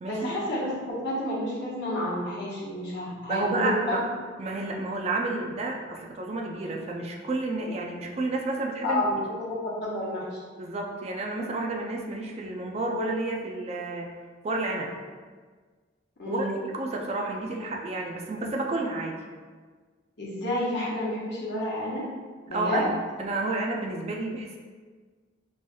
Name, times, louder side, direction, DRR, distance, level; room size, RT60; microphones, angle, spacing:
voice 1, 0.1-0.7 1.0-3.9 8.8-10.4 16.2-16.6 20.2-22.0 22.5-22.9, left 1 dB, 60° left, -6 dB, 1.1 m, -30 dB
voice 2, 3.3-4.0 4.4-9.0 10.6-14.1 14.4-14.9 16.3-19.2 22.5-24.6, right 2 dB, 35° right, 0 dB, 0.3 m, -30 dB
4.1 x 3.1 x 2.3 m, 1.5 s
head